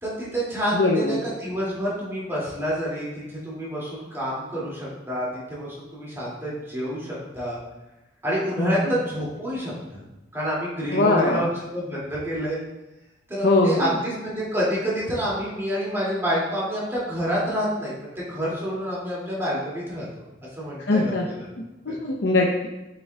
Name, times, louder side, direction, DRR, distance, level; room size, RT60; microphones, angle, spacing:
voice 1, 0.0-7.6 8.2-10.0 10.3-12.6 13.3-20.1 20.6-21.4, equal, 15° right, -7 dB, 2.4 m, -28 dB
voice 2, 0.7-1.2 8.6-8.9 10.9-11.5 13.4-13.9 20.9-21.3 21.9-22.7, left 2 dB, 70° left, -1 dB, 0.7 m, -21 dB
8.3 x 6.7 x 2.3 m, 1.0 s
head